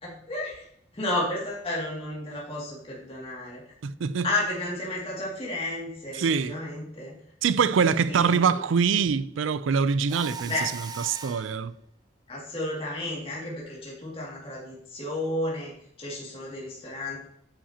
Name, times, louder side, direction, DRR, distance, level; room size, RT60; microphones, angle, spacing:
voice 1, 0.0-0.6 0.9-3.6 4.2-7.2 7.8-8.6 10.5-10.7 12.3-17.3, left 1 dB, 30° left, 2.2 m, -32 dB
voice 2, 3.8-4.3 6.2-6.6 7.4-10.7 11.1-11.7, right 6 dB, 90° right, 0.4 m, -24 dB
Mechanisms, 10.1-11.6, right 3 dB, 20° right, 0.4 m, -38 dB
9.6 x 5.9 x 2.8 m
head